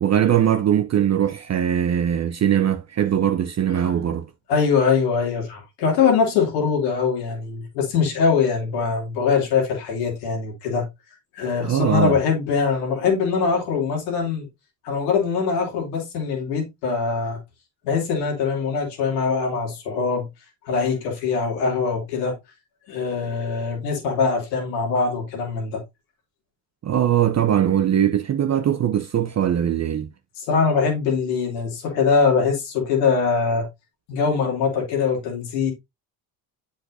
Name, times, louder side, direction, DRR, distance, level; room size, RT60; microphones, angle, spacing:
voice 1, 0.0-4.3 11.6-12.2 26.8-30.1, right 10 dB, 35° right, 0.6 m, -21 dB
voice 2, 4.5-10.9 11.3-14.5 14.8-17.4 17.8-20.3 20.6-22.4 22.9-25.8 30.4-33.7 34.1-35.7, left 5 dB, 90° left, 2.9 m, -22 dB
7.9 x 6.3 x 2.6 m
supercardioid pair, 70°, 48 cm